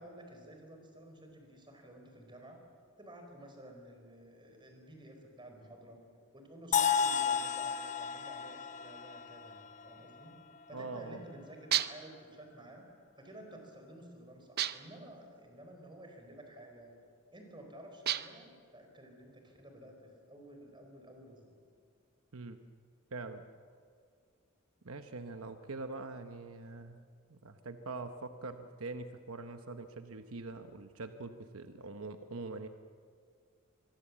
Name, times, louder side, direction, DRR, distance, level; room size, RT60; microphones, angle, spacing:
voice 1, 0.0-2.6 3.0-6.0 6.3-10.3 10.7-12.9 13.2-16.9 17.3-21.5, right 1 dB, 20° right, 3 dB, 4.6 m, -52 dB
sound 1, 6.7-10.6, left 7 dB, 35° left, 0.8 m, -33 dB
voice 2, 10.7-11.2 22.3-22.6 23.1-23.5 24.8-27.0 27.3-32.7, right 3 dB, 75° right, 8 dB, 0.9 m, -43 dB
sound 2, 11.7-12.2 14.6-15.0 18.1-18.5, right 11 dB, 50° right, 0.7 m, -33 dB
25.5 x 22.0 x 7.4 m, 2.1 s
head